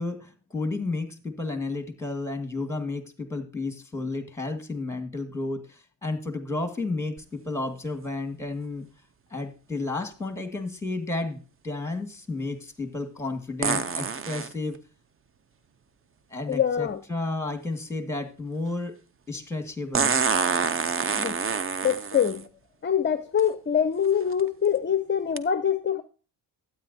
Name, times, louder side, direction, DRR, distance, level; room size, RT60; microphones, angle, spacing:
voice 1, 0.0-8.9 9.3-11.4 11.6-14.8 16.3-19.0 19.3-20.1, left 3 dB, 5° left, 1.8 m, -32 dB
sound 1, 7.2-7.3 13.6-14.5 16.5-16.6 19.9-22.4 23.4-23.5 24.1-24.4 25.4-25.5, right 5 dB, 30° right, 0.6 m, -26 dB
voice 2, 16.5-17.0 21.1-21.4 21.8-22.5 22.8-26.0, left 8 dB, 25° left, 0.6 m, -24 dB
12.5 x 9.0 x 2.7 m
cardioid pair, 90°, 47 cm